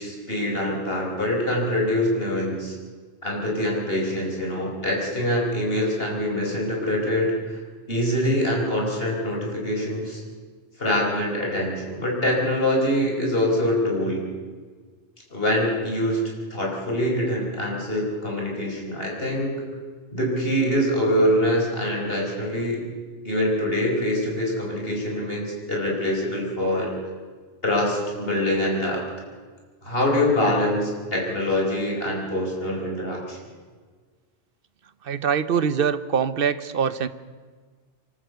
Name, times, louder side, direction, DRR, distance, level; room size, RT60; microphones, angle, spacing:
voice 1, 0.0-2.7 3.2-7.6 7.9-10.2 10.8-14.2 15.3-16.2 16.5-19.6 20.1-22.8 23.2-26.9 27.6-29.0 29.8-33.4, left 1 dB, 55° left, -1 dB, 5.1 m, -24 dB
voice 2, 35.0-37.1, right 7 dB, 55° right, 14 dB, 1.0 m, -23 dB
25.5 x 13.0 x 8.1 m, 1.5 s
omnidirectional pair, 1.2 m